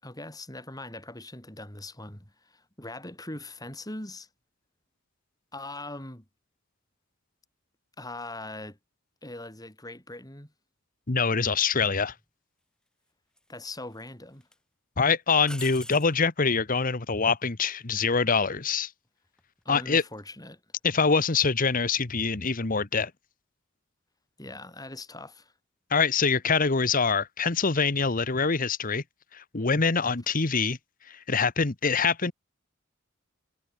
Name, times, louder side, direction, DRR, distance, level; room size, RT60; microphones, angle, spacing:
voice 1, 0.0-4.3 5.5-6.3 8.0-8.8 9.2-10.5 13.5-14.5 19.7-20.6 24.4-25.5, left 2 dB, 20° left, 6.9 m, -41 dB
voice 2, 11.1-12.1 15.0-18.9 19.7-20.0 20.8-23.1 25.9-29.0 29.3-30.8 31.1-32.3, left 5 dB, 45° left, 1.2 m, -25 dB
sound 1, 12.1-12.3 13.4-14.0 14.4-14.6 15.4-16.2 19.3-19.6, left 1 dB, 5° left, 3.2 m, -44 dB
head